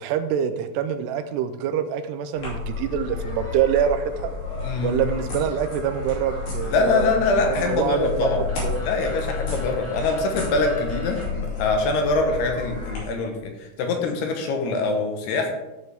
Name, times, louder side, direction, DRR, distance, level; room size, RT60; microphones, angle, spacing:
voice 1, 0.0-4.3 4.8-8.3 8.6-8.8, right 9 dB, 85° right, 9 dB, 2.7 m, -25 dB
sound 1, 2.4-13.0, left 4 dB, 55° left, 4.1 m, -31 dB
voice 2, 4.6-4.9 6.6-8.5 8.8-13.5 13.8-15.5, left 3 dB, 75° left, 3 dB, 3.2 m, -24 dB
sound 2, 4.7-11.2, left 2 dB, 20° left, 2.0 m, -45 dB
14.0 x 6.6 x 3.5 m, 1.0 s
omnidirectional pair, 4.8 m